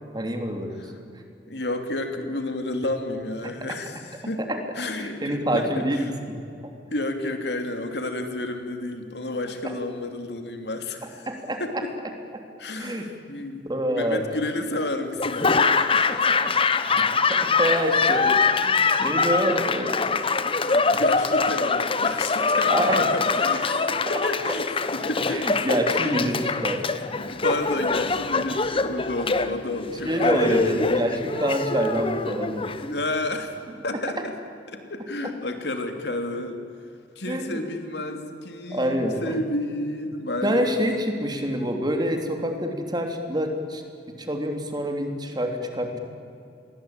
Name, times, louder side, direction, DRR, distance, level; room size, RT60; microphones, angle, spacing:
voice 1, 0.1-0.9 4.4-4.6 5.0-6.1 9.6-9.7 11.0-11.8 12.3-12.4 12.8-13.1 13.6-14.2 16.9-20.3 20.9-21.0 22.7-23.0 23.5-24.0 25.0-26.8 30.0-32.8 37.3-37.6 38.7-39.3 40.4-43.8 44.2-46.0, equal, 25° right, 4 dB, 3.2 m, -27 dB
voice 2, 1.5-4.5 4.8-5.9 6.9-11.2 11.6-11.7 12.6-16.4 20.9-25.5 26.0-26.2 27.2-30.9 32.9-33.5 33.8-34.3 34.7-36.6 37.2-40.6, left 2 dB, 70° left, 6 dB, 2.9 m, -31 dB
Laughter / Applause, 15.2-33.3, left 4 dB, 30° left, 1.1 m, -23 dB
29.0 x 22.5 x 8.9 m, 2.5 s
head